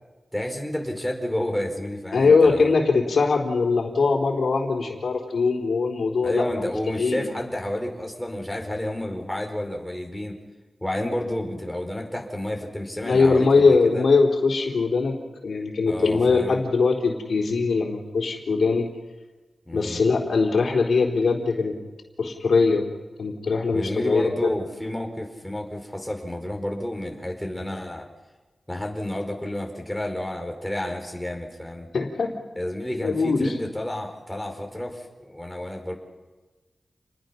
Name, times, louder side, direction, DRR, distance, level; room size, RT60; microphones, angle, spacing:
voice 1, 0.3-2.7 6.2-10.4 10.8-14.0 15.9-16.6 19.7-20.0 23.7-28.1 28.7-31.9 32.6-35.9, left 1 dB, 5° left, 2 dB, 4.7 m, -30 dB
voice 2, 2.1-6.7 7.0-7.3 13.0-18.9 19.7-21.8 22.2-22.9 23.2-24.3 31.9-32.3 33.0-33.5, left 4 dB, 85° left, 1 dB, 3.8 m, -21 dB
29.0 x 21.0 x 5.9 m, 1.2 s
wide cardioid pair, 85°, 0 cm